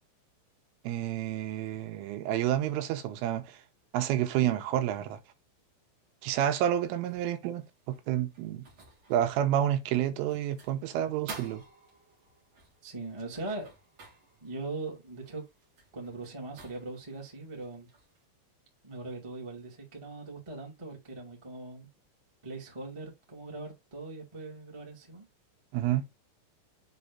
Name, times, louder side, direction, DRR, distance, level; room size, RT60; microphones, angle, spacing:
voice 1, 0.8-3.6 3.9-5.2 6.2-8.6 9.1-11.6 25.7-26.1, right 11 dB, 90° right, 3.4 m, -29 dB
sound 1, 7.0-18.3, right 4 dB, 65° right, 1.2 m, -52 dB
voice 2, 12.8-13.7 14.4-15.4 15.9-17.9 18.8-21.9 22.4-25.2, right 3 dB, 40° right, 0.4 m, -40 dB
7.5 x 3.0 x 5.3 m
omnidirectional pair, 5.6 m